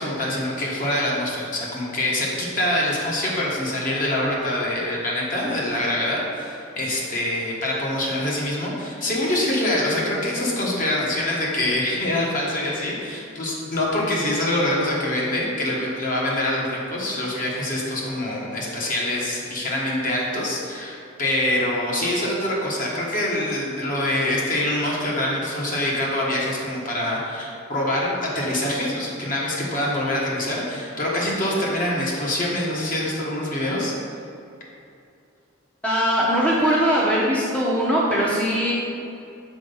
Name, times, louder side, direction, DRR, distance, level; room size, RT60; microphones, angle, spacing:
voice 1, 0.0-33.9, left 1 dB, 45° left, -4 dB, 1.4 m, -25 dB
voice 2, 35.8-38.7, equal, 5° left, -6 dB, 0.8 m, -20 dB
6.1 x 4.5 x 5.5 m, 2.5 s
head